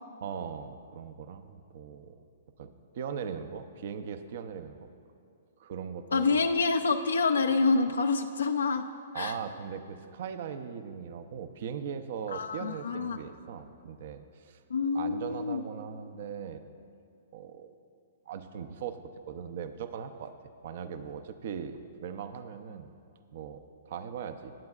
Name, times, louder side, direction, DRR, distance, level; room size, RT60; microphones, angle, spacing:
voice 1, 0.2-2.2 2.6-4.9 5.6-6.4 9.1-14.6 14.9-16.6 17.3-17.7 18.3-19.0 19.3-20.3 20.6-22.9 23.3-24.5, right 7 dB, 60° right, 10 dB, 0.6 m, -39 dB
voice 2, 6.1-8.9 9.1-9.4 12.3-13.2 14.7-15.6, left 4 dB, 90° left, 7 dB, 0.4 m, -27 dB
19.5 x 8.6 x 2.4 m, 2.5 s
hypercardioid pair, 135°, 0 cm